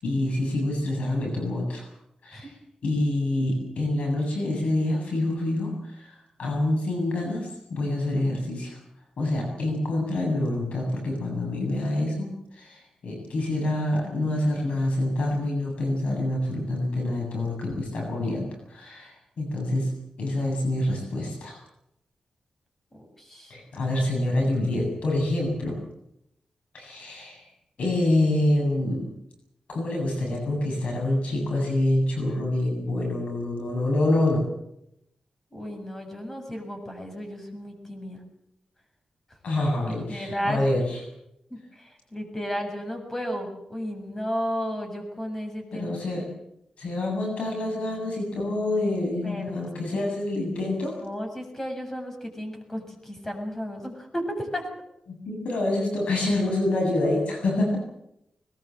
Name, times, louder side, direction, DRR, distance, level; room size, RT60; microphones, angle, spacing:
voice 1, 0.0-1.9 2.2-2.5 2.8-8.8 9.2-21.6 23.5-25.8 26.7-27.5 27.8-29.1 29.7-34.5 39.4-41.0 45.7-46.2 46.8-51.0 55.1-57.8, left 1 dB, 80° left, 1 dB, 7.9 m, -26 dB
voice 2, 22.9-23.6 35.5-38.2 39.8-40.7 41.5-46.0 49.2-49.5 49.9-50.1 51.0-54.7, equal, 20° left, 4 dB, 7.5 m, -33 dB
21.5 x 20.0 x 7.8 m, 0.78 s
wide cardioid pair, 105°, 2 cm